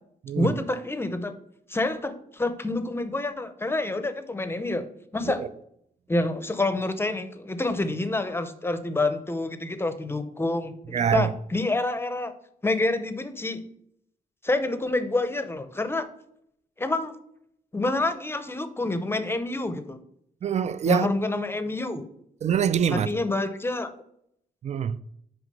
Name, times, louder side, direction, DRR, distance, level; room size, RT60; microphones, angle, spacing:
voice 1, 0.3-1.3 1.7-4.9 5.1-5.4 6.1-12.3 12.6-13.6 14.4-16.1 16.8-17.1 17.7-20.0 20.9-22.1 22.9-23.9, left 2 dB, 15° left, 0.6 m, -27 dB
voice 2, 10.9-11.3 20.4-21.1 22.4-23.1 24.6-25.0, right 8 dB, 50° right, 0.4 m, -24 dB
6.3 x 5.0 x 5.3 m
wide cardioid pair, 140°, 15 cm